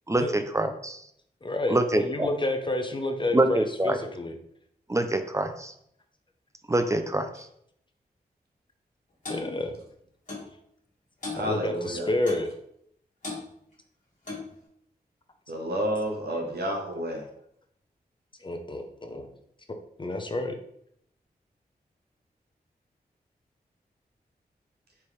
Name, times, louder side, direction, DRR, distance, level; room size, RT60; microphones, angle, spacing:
voice 1, 0.1-1.0 1.7-2.3 3.3-4.0 4.9-5.7 6.7-7.3, right 1 dB, 20° right, 8 dB, 0.5 m, -25 dB
voice 2, 1.4-4.3 9.3-9.8 11.4-12.5 18.4-19.3 20.0-20.6, left 2 dB, 30° left, 6 dB, 0.7 m, -29 dB
Clock, 9.3-9.5 10.3-10.5 11.2-11.5 12.3-12.5 13.2-13.4 14.3-14.5, left 3 dB, 50° left, 1.7 m, -36 dB
voice 3, 11.3-12.1 15.5-17.2, equal, 75° right, 1 dB, 1.0 m, -30 dB
4.4 x 3.3 x 3.2 m, 0.71 s
cardioid pair, 50°, 17 cm